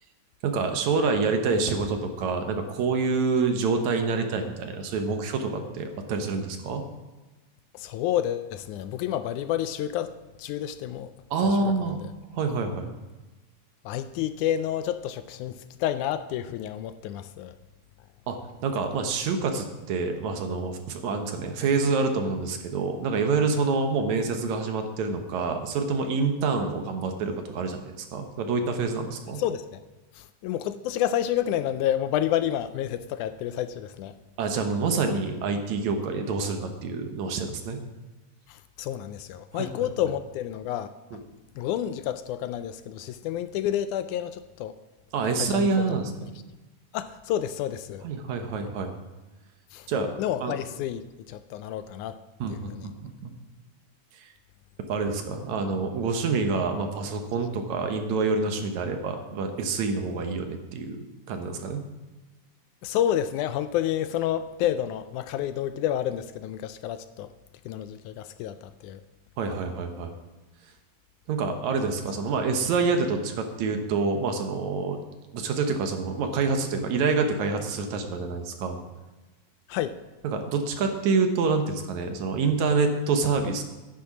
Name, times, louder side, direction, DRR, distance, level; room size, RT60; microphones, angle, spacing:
voice 1, 0.4-6.8 11.3-12.0 12.3-12.9 18.3-18.4 18.6-29.4 34.4-37.8 39.5-39.7 41.1-41.2 45.1-46.3 48.0-48.9 49.9-50.1 50.4-50.6 52.4-53.3 54.1-54.3 54.9-61.8 69.4-70.1 71.3-75.0 75.3-78.8 80.2-83.6, right 4 dB, 70° right, 5 dB, 2.3 m, -27 dB
voice 2, 7.7-10.1 10.4-11.1 11.4-11.7 13.9-17.5 29.4-29.8 30.2-34.1 38.5-40.9 41.6-44.8 45.4-45.7 46.9-48.0 49.7-49.9 50.2-51.0 51.3-52.2 52.5-52.9 62.8-67.3 67.7-69.0 79.7-80.0, left 11 dB, 80° left, 12 dB, 1.9 m, -29 dB
10.5 x 10.0 x 6.0 m, 1.2 s
omnidirectional pair, 3.7 m